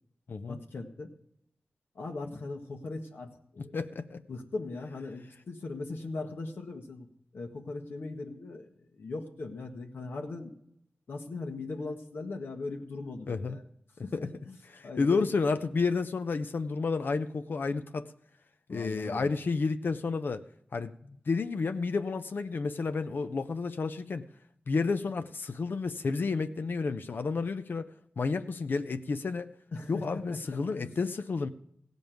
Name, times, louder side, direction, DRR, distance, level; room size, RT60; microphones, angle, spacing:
voice 1, 0.5-1.1 1.9-3.7 4.3-7.1 7.3-8.7 9.0-10.5 11.1-13.6 14.0-15.3 18.7-19.4 29.7-30.0 30.3-30.9, left 3 dB, 85° left, 2 dB, 1.4 m, -39 dB
voice 2, 3.6-4.2 13.3-13.6 14.1-14.3 14.8-18.1 18.7-20.4 20.7-24.2 24.7-27.9 28.2-29.5 29.9-31.5, left 4 dB, 65° left, 9 dB, 0.6 m, -31 dB
16.0 x 5.4 x 9.2 m, 0.73 s
wide cardioid pair, 80°, 4 cm